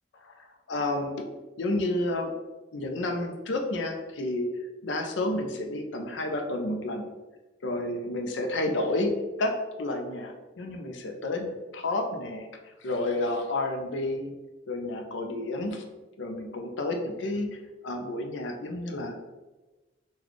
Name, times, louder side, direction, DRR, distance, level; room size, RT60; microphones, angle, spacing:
voice 1, 0.2-1.3 1.6-2.3 2.7-4.5 4.8-7.1 7.6-9.1 9.4-12.5 12.8-14.4 14.7-15.8 16.2-19.1, left 2 dB, 75° left, 4 dB, 0.5 m, -30 dB
4.0 x 2.3 x 3.1 m, 1.1 s
head